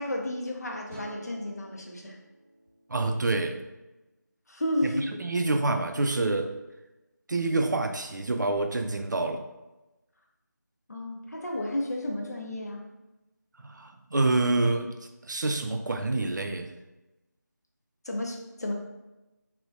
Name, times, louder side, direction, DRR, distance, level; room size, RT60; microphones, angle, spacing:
voice 1, 0.0-2.2 4.5-5.0 10.9-12.8 18.0-18.7, left 1 dB, 60° left, 0 dB, 0.6 m, -32 dB
sound 1, 0.9-4.1, right 1 dB, ahead, 0.9 m, -49 dB
voice 2, 2.9-3.7 4.8-6.5 7.3-9.4 13.6-14.9 15.2-16.7, right 2 dB, 75° right, 5 dB, 0.4 m, -27 dB
3.3 x 2.2 x 2.6 m, 1.0 s
figure-of-eight pair, 165°, 10 cm